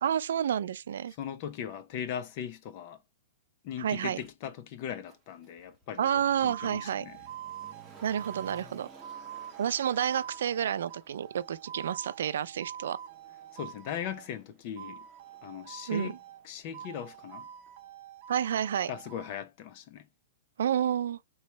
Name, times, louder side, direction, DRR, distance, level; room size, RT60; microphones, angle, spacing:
voice 1, 0.0-1.1 3.8-4.2 6.0-7.0 8.0-8.9 9.6-13.0 15.9-16.1 18.3-18.9 20.6-21.2, right 9 dB, 75° right, 0.4 m, -29 dB
voice 2, 1.2-3.0 3.6-7.2 13.5-15.1 15.4-16.2 16.4-17.5 18.9-20.1, left 9 dB, 40° left, 0.6 m, -39 dB
Motor vehicle (road), 4.2-4.3 5.1-18.0 18.3-18.4, right 3 dB, 10° right, 0.9 m, -57 dB
sound 1, 6.0-14.3 14.8-16.5 16.7-19.4, right 10 dB, 40° right, 0.9 m, -45 dB
4.1 x 3.2 x 3.2 m
hypercardioid pair, 160°, 0 cm